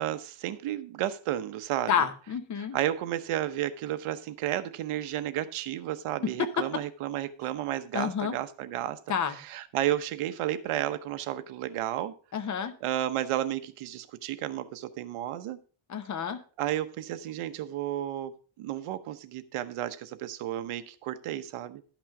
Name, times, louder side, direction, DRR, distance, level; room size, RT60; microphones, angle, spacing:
voice 1, 0.0-1.9 2.5-12.1 12.8-15.6 16.6-21.8, right 12 dB, 85° right, 0.9 m, -32 dB
voice 2, 1.9-2.8 6.4-6.5 7.9-8.4 9.1-9.3 12.3-12.7 15.9-16.4, left 7 dB, 35° left, 0.8 m, -29 dB
11.5 x 6.1 x 4.8 m
cardioid pair, 180°, 50 cm